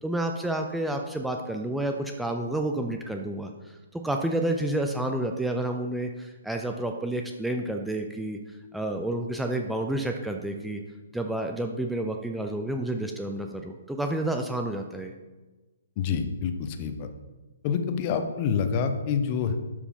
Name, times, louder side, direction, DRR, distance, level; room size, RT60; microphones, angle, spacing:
voice 1, 0.0-8.4 8.7-10.8 11.1-15.1, right 1 dB, ahead, 3 dB, 0.5 m, -30 dB
voice 2, 16.0-17.1 17.6-19.6, left 6 dB, 35° left, 7 dB, 0.8 m, -27 dB
12.0 x 4.8 x 3.7 m, 1.2 s
figure-of-eight pair, 125°, 0 cm